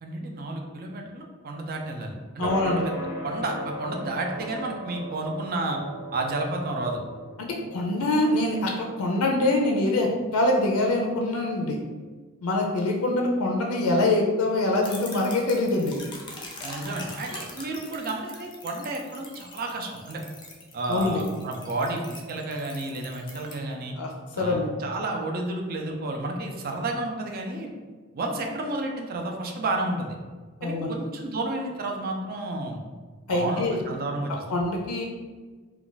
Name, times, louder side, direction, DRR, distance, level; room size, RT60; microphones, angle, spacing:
voice 1, 0.0-2.9 3.2-5.8 6.1-7.0 16.6-20.2 20.7-23.9 24.3-27.7 28.1-30.2 30.6-32.8 33.3-34.3, right 2 dB, 45° right, 2 dB, 0.4 m, -31 dB
voice 2, 2.4-2.8 7.4-11.8 12.4-15.9 20.9-21.2 24.0-24.1 24.4-24.7 30.6-30.9 33.3-33.8 34.5-35.1, left 2 dB, 80° left, 0 dB, 0.4 m, -24 dB
sound 1, 2.4-12.0, right 1 dB, 90° right, 1.2 m, -39 dB
sound 2, 14.8-23.5, left 2 dB, 20° left, 0.5 m, -42 dB
2.4 x 2.2 x 3.8 m, 1.4 s
head